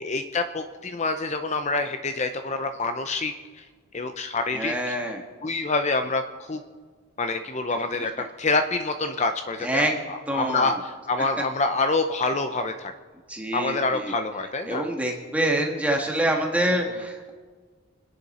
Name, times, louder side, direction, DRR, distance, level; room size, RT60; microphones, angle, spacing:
voice 1, 0.0-3.7 3.9-4.9 5.4-6.2 6.5-6.6 7.2-8.1 8.4-12.9 13.5-14.8, left 3 dB, 35° left, 7 dB, 0.6 m, -26 dB
voice 2, 4.5-5.2 9.6-10.0 10.3-10.7 13.3-14.1 14.7-17.3, right 1 dB, 5° right, 1 dB, 1.5 m, -26 dB
28.5 x 10.5 x 4.2 m, 1.5 s
head